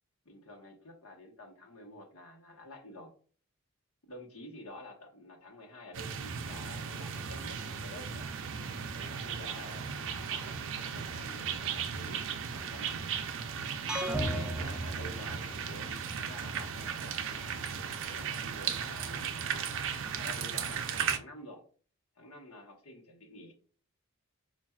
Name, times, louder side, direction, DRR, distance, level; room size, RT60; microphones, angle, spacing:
voice 1, 0.2-3.1 4.1-8.3 9.0-13.0 14.1-17.2 18.0-19.9 20.2-21.6 22.2-23.5, left 1 dB, 65° left, 0 dB, 1.1 m, -49 dB
sound 1, 5.9-21.2, right 7 dB, 60° right, 0.4 m, -36 dB
sound 2, 13.9-15.9, right 1 dB, 5° right, 0.5 m, -35 dB
5.5 x 2.5 x 2.3 m, 0.42 s
head